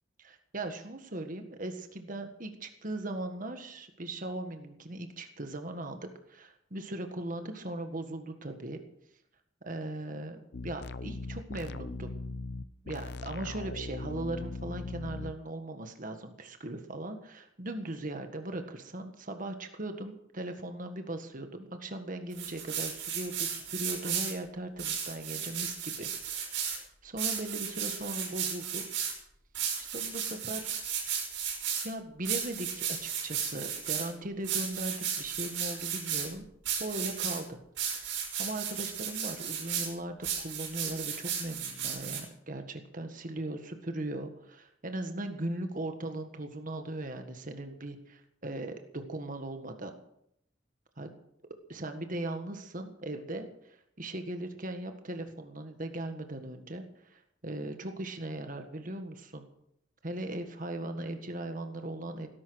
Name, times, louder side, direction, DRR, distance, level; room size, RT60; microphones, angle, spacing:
voice 1, 0.2-6.0 6.3-8.8 9.6-12.1 12.8-28.8 29.8-30.8 31.8-36.4 36.8-37.6 38.0-50.0 51.0-51.1 51.7-59.5 60.0-62.3, right 1 dB, 45° right, 6 dB, 1.7 m, -39 dB
sound 1, 10.5-15.3, left 2 dB, 60° left, 0.7 m, -39 dB
sound 2, 22.3-24.3 24.8-26.8 27.2-29.1 29.6-31.9 32.2-34.1 34.4-36.3 36.7-37.4 37.8-39.9 40.2-42.2, right 8 dB, 75° right, 5.5 m, -34 dB
18.0 x 11.5 x 6.4 m, 0.74 s
head